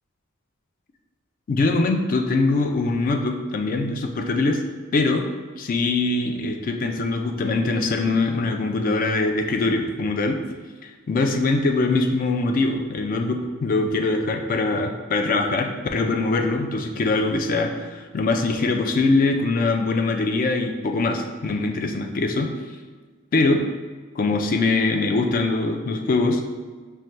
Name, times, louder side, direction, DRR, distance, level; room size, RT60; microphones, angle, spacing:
voice 1, 1.5-4.6 4.9-5.3 5.6-10.4 10.8-22.5 23.3-23.6 24.2-26.4, left 3 dB, 40° left, 4 dB, 0.3 m, -22 dB
5.5 x 2.2 x 3.1 m, 1.5 s
head